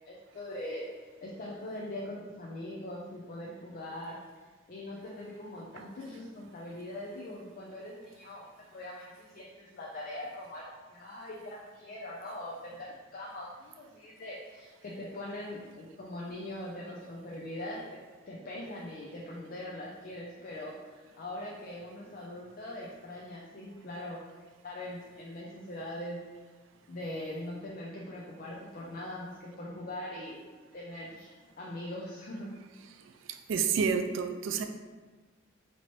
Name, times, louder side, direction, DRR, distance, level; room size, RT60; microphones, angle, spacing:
voice 1, 0.1-0.8 1.2-4.2 4.7-8.4 8.7-17.8 18.3-24.2 24.6-26.2 26.9-30.4 30.7-31.3 31.6-32.5, left 1 dB, 45° left, -4 dB, 0.5 m, -41 dB
voice 2, 32.9-34.6, right 6 dB, 75° right, 7 dB, 0.4 m, -30 dB
4.2 x 2.9 x 3.0 m, 1.4 s
head